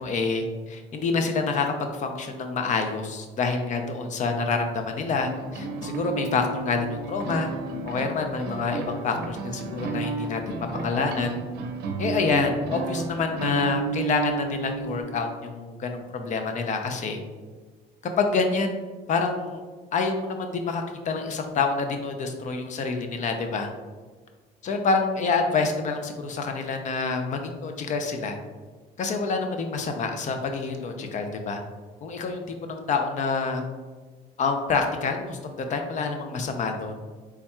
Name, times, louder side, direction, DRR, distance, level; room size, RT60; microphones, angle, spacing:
voice 1, 0.0-7.5 7.8-11.3 12.0-17.2 18.2-18.7 19.1-19.6 19.9-23.7 24.6-28.4 29.0-31.6 32.0-33.6 34.4-36.9, left 4 dB, 45° left, 5 dB, 0.5 m, -27 dB
sound 1, 5.2-15.0, right 4 dB, 75° right, 0.5 m, -32 dB
4.1 x 3.5 x 2.3 m, 1.4 s
cardioid pair, 110°, 17 cm